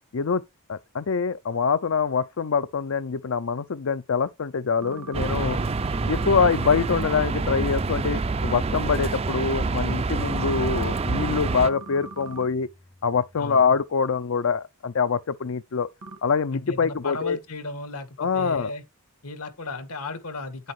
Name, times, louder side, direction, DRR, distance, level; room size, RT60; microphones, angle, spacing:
voice 1, 0.7-5.6 6.1-12.7 13.0-15.9 16.2-17.4 18.2-18.7, left 5 dB, 65° left, 0.5 m, -24 dB
sound 1, 4.8-6.9 10.2-12.5 16.0-16.2, right 2 dB, 80° right, 1.6 m, -40 dB
sound 2, 5.1-11.7, right 3 dB, 25° right, 0.4 m, -27 dB
voice 2, 5.4-5.7 13.4-13.6 16.5-18.8 19.2-20.7, left 3 dB, 80° left, 1.8 m, -35 dB
Bass guitar, 7.4-13.7, left 1 dB, 15° left, 0.6 m, -44 dB
10.5 x 8.0 x 3.2 m
head